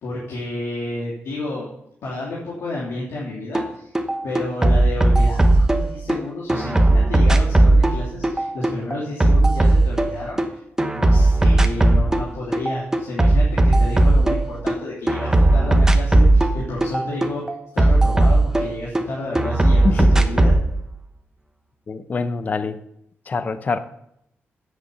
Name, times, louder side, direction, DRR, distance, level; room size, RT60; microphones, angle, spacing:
voice 1, 0.0-1.7 2.0-3.9 4.2-10.4 10.9-20.5, left 2 dB, 85° left, -6 dB, 3.1 m, -31 dB
sound 1, 3.5-3.7 3.9-6.2 6.5-10.5 10.8-12.3 12.5-14.8 15.1-19.0 19.4-20.6, right 2 dB, 10° right, 1.0 m, -16 dB
voice 2, 21.9-22.8 23.3-23.8, left 4 dB, 35° left, 11 dB, 0.7 m, -24 dB
10.0 x 8.0 x 6.9 m, 0.77 s
wide cardioid pair, 130°, 5 cm